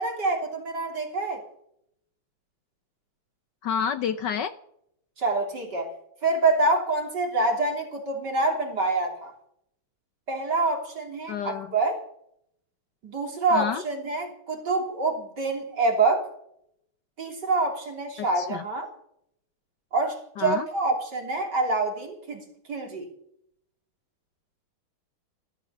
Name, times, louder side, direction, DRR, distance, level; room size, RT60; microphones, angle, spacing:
voice 1, 0.0-1.4 5.2-5.9 6.2-9.3 10.3-12.0 13.0-16.3 17.2-18.9 19.9-22.4 22.7-23.1, right 3 dB, 50° right, 2 dB, 3.8 m, -26 dB
voice 2, 3.6-4.5 11.3-11.7 13.5-13.8 18.2-18.6 20.4-20.7, left 8 dB, 65° left, 11 dB, 1.2 m, -29 dB
15.0 x 13.0 x 7.0 m, 0.73 s
omnidirectional pair, 2.4 m